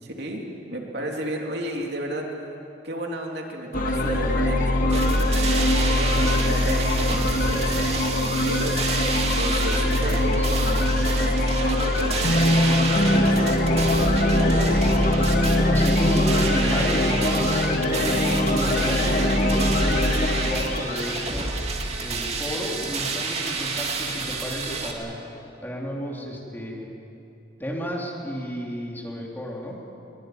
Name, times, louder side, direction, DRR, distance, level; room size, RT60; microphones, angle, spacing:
voice 1, 0.0-2.3 2.8-5.5 5.9-8.8 9.4-10.4 11.6-14.9, right 1 dB, 65° right, 0 dB, 3.2 m, -33 dB
sound 1, 3.7-21.3, left 1 dB, 50° left, 2.1 m, -22 dB
sound 2, 4.9-24.9, right 3 dB, 35° right, 2.5 m, -30 dB
voice 2, 10.0-10.9 15.3-17.6 18.0-21.5 22.0-25.2 25.6-26.9 27.6-29.8, equal, 10° left, -2 dB, 3.5 m, -33 dB
22.5 x 21.0 x 9.5 m, 2.8 s
head